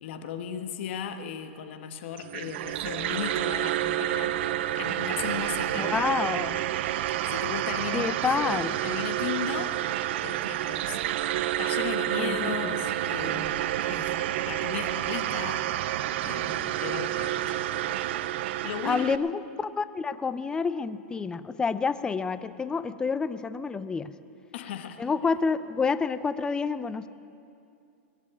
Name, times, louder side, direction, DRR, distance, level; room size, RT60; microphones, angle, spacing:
voice 1, 0.0-4.3 4.8-6.1 7.3-9.8 10.2-11.0 11.6-14.1 14.5-15.6 16.2-17.5 18.6-19.0 24.5-25.0, left 8 dB, 60° left, 8 dB, 1.3 m, -36 dB
sound 1, 2.2-19.2, right 13 dB, 60° right, 0.5 m, -29 dB
voice 2, 5.7-6.6 7.9-8.8 12.1-12.7 18.8-24.1 25.0-27.1, left 5 dB, 10° left, 13 dB, 0.5 m, -28 dB
20.0 x 7.5 x 8.7 m, 2.5 s
hypercardioid pair, 140°, 7 cm